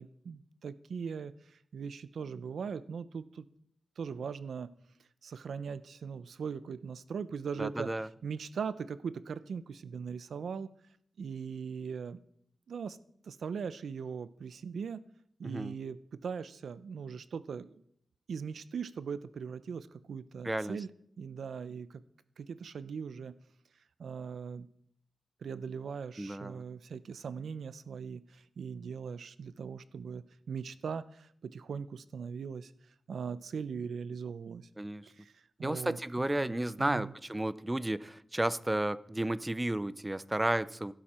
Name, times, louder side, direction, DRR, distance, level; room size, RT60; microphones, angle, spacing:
voice 1, 0.0-3.4 4.0-4.7 5.2-7.9 8.2-10.7 11.2-12.2 12.7-13.0 13.2-15.1 15.4-17.8 18.3-20.9 21.2-22.0 22.4-23.3 24.0-24.7 25.4-32.7 33.1-34.7 35.1-36.0 36.4-37.1, right 6 dB, 80° right, 15 dB, 0.6 m, -40 dB
voice 2, 7.6-8.1 15.4-15.8 20.4-20.8 26.2-26.6 34.8-35.1 35.6-40.9, right 1 dB, 10° right, 16 dB, 0.4 m, -33 dB
15.5 x 12.0 x 4.3 m, 0.69 s
wide cardioid pair, 180°, 0 cm